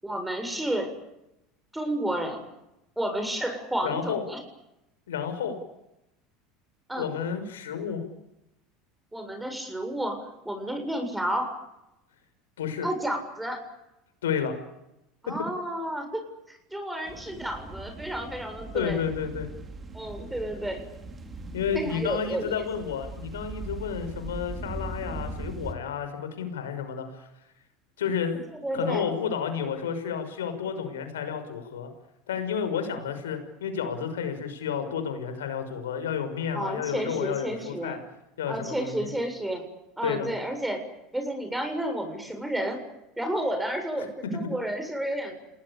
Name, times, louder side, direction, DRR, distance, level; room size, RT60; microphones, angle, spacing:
voice 1, 0.0-0.9 1.7-2.4 3.0-4.4 6.9-7.1 9.1-11.5 12.8-13.6 15.2-16.2 16.5-19.0 19.9-20.8 21.7-22.5 28.6-29.1 36.5-38.0 38.5-39.7 40.0-40.8 41.1-42.8 43.2-45.4, right 1 dB, 5° right, 5 dB, 7.5 m, -31 dB
voice 2, 3.8-4.2 5.1-5.6 7.0-8.0 12.6-12.9 14.2-14.5 18.7-19.5 21.5-27.3 28.0-28.4 28.7-31.9 32.3-38.0 38.4-39.1 40.0-40.3, left 7 dB, 85° left, 8 dB, 6.1 m, -31 dB
sound 1, 17.0-25.7, right 2 dB, 30° right, 4.8 m, -40 dB
29.5 x 20.0 x 8.8 m, 0.89 s
hypercardioid pair, 85°, 0 cm